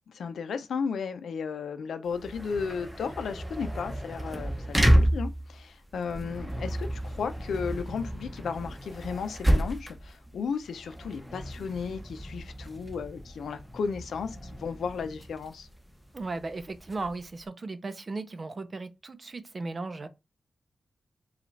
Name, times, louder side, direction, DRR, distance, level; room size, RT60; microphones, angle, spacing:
voice 1, 0.1-15.7, left 5 dB, 90° left, 0.6 m, -34 dB
sound 1, 2.1-17.4, equal, 5° right, 0.8 m, -31 dB
voice 2, 16.1-20.1, right 3 dB, 35° right, 0.6 m, -36 dB
5.0 x 2.4 x 3.2 m
wide cardioid pair, 135°, 0 cm